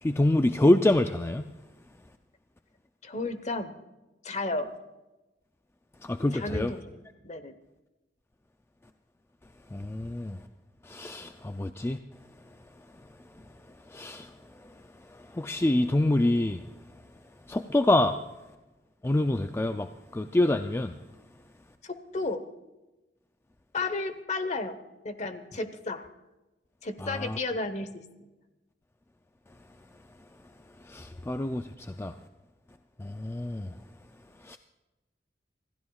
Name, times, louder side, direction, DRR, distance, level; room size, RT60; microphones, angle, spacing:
voice 1, 0.0-1.5 6.0-6.7 9.7-10.4 10.8-12.0 13.9-14.3 15.1-16.6 17.5-18.2 19.0-20.9 27.0-27.4 30.9-32.1 33.0-33.7 34.4-34.6, left 1 dB, 15° left, 0.4 m, -26 dB
voice 2, 3.0-3.7 4.2-4.7 6.3-7.0 7.2-7.5 21.8-22.4 23.7-24.8 25.0-26.1 26.8-28.0, left 3 dB, 40° left, 1.1 m, -33 dB
27.0 x 15.5 x 2.4 m
head